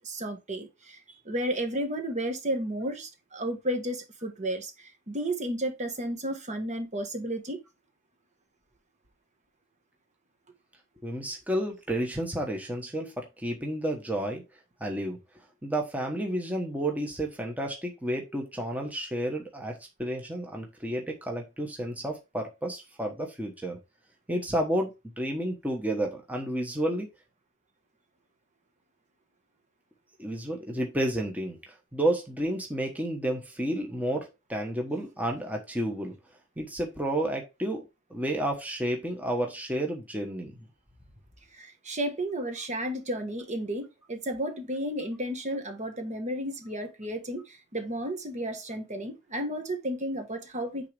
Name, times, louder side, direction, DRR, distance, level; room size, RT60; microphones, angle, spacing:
voice 1, 0.0-1.0 1.2-7.6 41.5-50.9, right 1 dB, 35° right, 1.4 m, -33 dB
voice 2, 11.0-14.4 14.8-15.2 15.6-23.8 24.3-27.1 30.2-31.6 31.9-36.1 36.6-37.8 38.1-40.6, right 1 dB, 10° right, 1.2 m, -31 dB
9.4 x 3.9 x 3.4 m
head